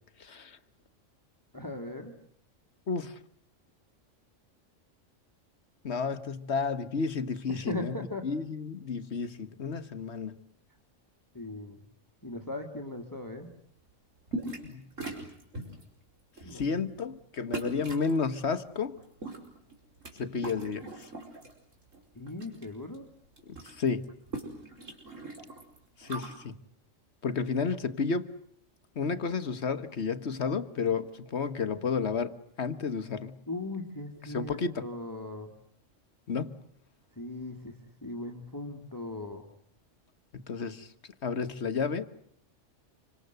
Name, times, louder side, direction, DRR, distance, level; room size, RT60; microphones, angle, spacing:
voice 1, 0.2-0.6 2.9-3.2 5.8-8.0 8.2-10.4 14.6-14.8 15.6-15.8 16.5-19.0 20.2-21.1 23.5-24.1 26.0-26.6 27.2-28.3 29.0-33.4 34.3-34.9 36.3-36.6 40.3-40.9 41.2-42.1, left 5 dB, 60° left, 1.6 m, -32 dB
voice 2, 1.5-2.2 7.5-8.3 11.3-11.8 12.2-13.5 16.4-16.7 22.2-23.1 33.5-35.5 37.2-39.5, left 2 dB, 15° left, 2.2 m, -38 dB
sound 1, 14.3-14.7 15.0-15.8 16.4-16.6 17.5-18.1 19.0-20.1 20.4-21.5 21.9-22.7 22.9-23.0 23.3-26.3, right 2 dB, 80° right, 5.2 m, -39 dB
27.5 x 25.0 x 8.0 m
omnidirectional pair, 1.3 m